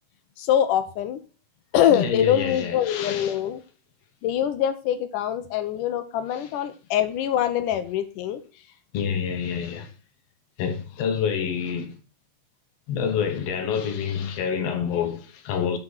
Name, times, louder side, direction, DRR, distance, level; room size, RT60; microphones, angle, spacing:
voice 1, 0.4-1.2 1.7-3.6 4.2-8.4, left 10 dB, 90° left, 2.4 m, -24 dB
voice 2, 1.9-3.4 6.3-6.5 8.9-9.9 10.6-12.0 12.9-15.8, left 7 dB, 60° left, 2.0 m, -27 dB
6.0 x 5.8 x 6.4 m
omnidirectional pair, 3.6 m